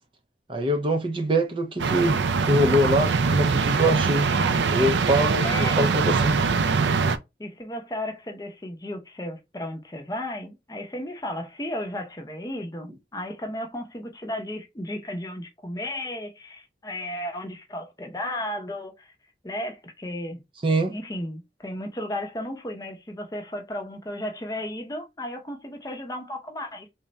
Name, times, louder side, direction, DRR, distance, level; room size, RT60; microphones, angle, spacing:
voice 1, 0.5-2.2 2.5-4.3 4.7-6.4 20.6-21.0, right 1 dB, 30° right, 0.4 m, -23 dB
sound 1, 1.8-7.2, right 5 dB, 85° right, 0.4 m, -23 dB
voice 2, 5.4-5.9 7.4-19.1 19.4-20.4 20.9-26.9, left 1 dB, 20° left, 0.6 m, -34 dB
3.5 x 2.1 x 4.0 m
head